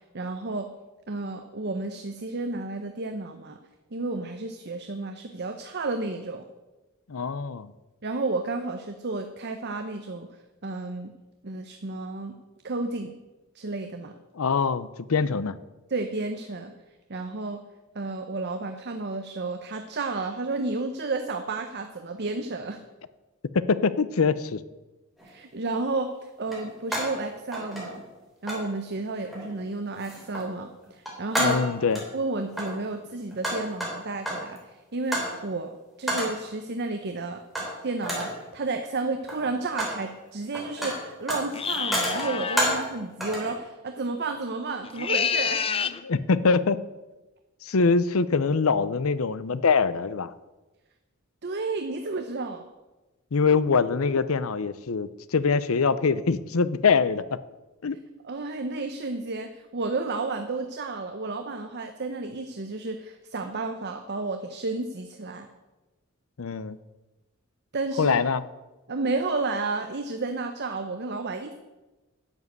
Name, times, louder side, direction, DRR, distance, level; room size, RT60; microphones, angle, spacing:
voice 1, 0.1-0.7 1.1-3.6 3.9-6.4 8.0-10.4 10.6-11.1 11.4-12.3 12.6-13.1 13.5-14.1 15.9-16.7 17.1-17.6 17.9-22.8 25.2-28.0 28.4-31.6 32.1-35.7 36.0-37.4 37.8-45.7 51.4-52.6 58.2-65.5 67.7-68.1 68.9-71.5, right 3 dB, 50° right, 6 dB, 0.9 m, -32 dB
voice 2, 7.1-7.7 14.4-15.6 23.5-24.6 31.4-32.0 46.0-46.8 47.6-50.3 53.3-57.4 57.8-58.0 66.4-66.8 68.0-68.4, left 5 dB, 75° left, 16 dB, 0.6 m, -24 dB
sound 1, 25.2-25.3 26.5-27.2 27.5-28.2 28.5-28.7 29.3-29.6 30.0-30.5 30.8-32.1 32.5-34.6 35.1-35.4 36.1-36.4 37.5-37.8 38.0-38.4 39.1-40.0 40.3-42.9 43.2-43.5, equal, ahead, 3.6 m, -30 dB
sound 2, 41.5-42.8 44.8-46.0, left 7 dB, 25° left, 0.5 m, -28 dB
11.0 x 7.5 x 8.0 m, 1.1 s
head